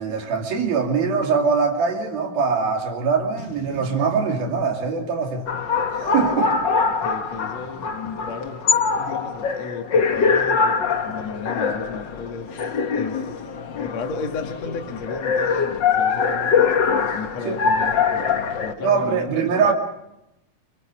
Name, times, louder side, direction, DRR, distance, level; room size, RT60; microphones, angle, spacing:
voice 1, 0.0-5.5 5.9-6.6 17.4-17.6 18.8-19.7, right 5 dB, 75° right, 4.7 m, -22 dB
Boom, 3.4-6.7, left 1 dB, 65° left, 5.2 m, -42 dB
sound 1, 5.5-18.7, left 5 dB, 85° left, 1.0 m, -23 dB
voice 2, 6.9-8.6 9.0-13.4 13.6-16.7 17.1-19.7, left 5 dB, 50° left, 2.8 m, -34 dB
29.5 x 23.0 x 5.1 m
omnidirectional pair, 4.3 m